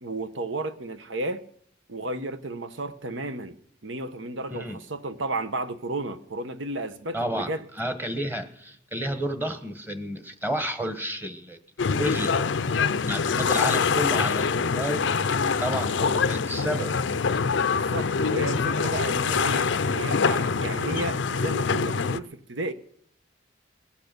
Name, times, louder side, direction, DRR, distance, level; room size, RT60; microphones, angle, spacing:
voice 1, 0.0-1.4 1.9-3.6 3.8-7.6 13.5-13.6 17.7-22.7, right 2 dB, 75° right, 1.1 m, -33 dB
voice 2, 7.1-7.5 7.8-11.6 11.9-12.3 12.9-15.1 15.6-16.9, equal, 10° right, 1.3 m, -31 dB
sound 1, 11.8-22.2, left 5 dB, 65° left, 0.5 m, -25 dB
21.0 x 8.5 x 6.8 m
head